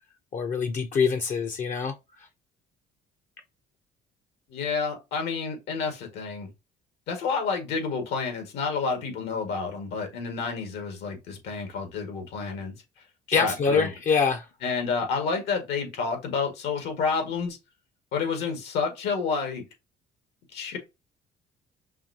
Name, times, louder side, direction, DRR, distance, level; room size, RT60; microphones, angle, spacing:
voice 1, 0.3-1.9 13.3-14.4, left 5 dB, 50° left, 0.7 m, -24 dB
voice 2, 4.5-6.5 7.1-12.7 13.4-13.9 14.6-17.6 18.1-19.6 20.5-20.8, left 5 dB, 80° left, 1.8 m, -29 dB
5.6 x 2.7 x 2.7 m
cardioid pair, 110°, 17 cm